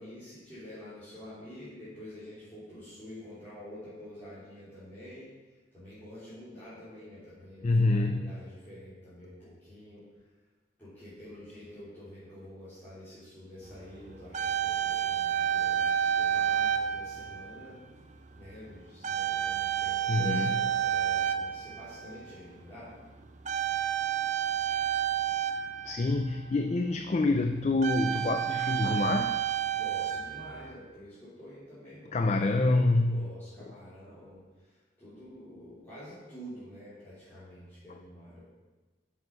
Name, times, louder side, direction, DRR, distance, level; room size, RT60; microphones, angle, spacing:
voice 1, 0.0-5.3 5.7-10.0 10.8-17.8 18.3-22.9 29.7-38.4, left 1 dB, 10° left, -15 dB, 3.4 m, -48 dB
voice 2, 7.6-8.4 20.1-20.6 25.8-29.3 32.1-33.3, left 2 dB, 35° left, 7 dB, 0.4 m, -26 dB
sound 1, 13.8-13.9 14.1-17.7 18.4-18.6 19.0-22.3 23.4-26.5 27.2-27.3 27.6-30.7, right 9 dB, 40° right, 0.5 m, -30 dB
9.5 x 6.4 x 5.5 m, 1.3 s
head